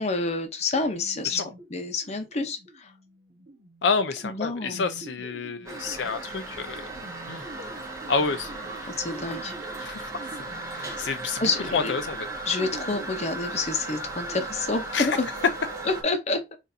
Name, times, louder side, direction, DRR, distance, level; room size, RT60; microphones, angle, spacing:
voice 1, 0.0-1.4 1.7-2.9 4.2-4.8 8.9-9.5 10.8-11.0 11.4-11.9 12.5-15.3 15.8-16.4, left 3 dB, 35° left, 0.8 m, -28 dB
sound 1, 0.7-14.5, right 2 dB, 70° right, 1.5 m, -46 dB
voice 2, 3.8-6.9 7.3-7.5 8.1-8.8 9.8-10.3 10.7-11.4 11.7-12.3 14.9-15.2, left 5 dB, 70° left, 0.4 m, -29 dB
Toilet flush, 5.7-16.0, right 2 dB, 15° right, 1.2 m, -36 dB
6.4 x 2.6 x 2.7 m
head